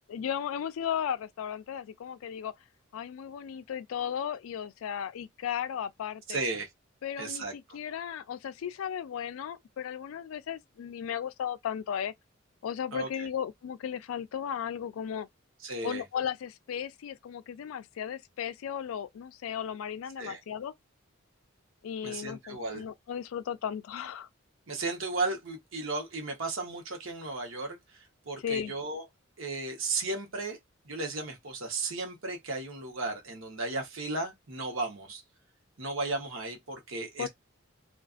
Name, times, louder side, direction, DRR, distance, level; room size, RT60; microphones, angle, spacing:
voice 1, 0.1-2.5 2.9-6.4 7.0-12.1 12.6-15.3 15.8-20.7 21.8-24.3 28.4-28.7 37.2-37.3, left 8 dB, 90° left, 0.3 m, -35 dB
voice 2, 6.3-6.7 7.2-7.5 12.9-13.3 15.6-16.0 20.2-20.4 22.0-22.8 24.7-29.0 29.4-30.6 30.8-35.2 35.8-37.3, right 3 dB, 75° right, 1.0 m, -35 dB
2.4 x 2.4 x 2.4 m
head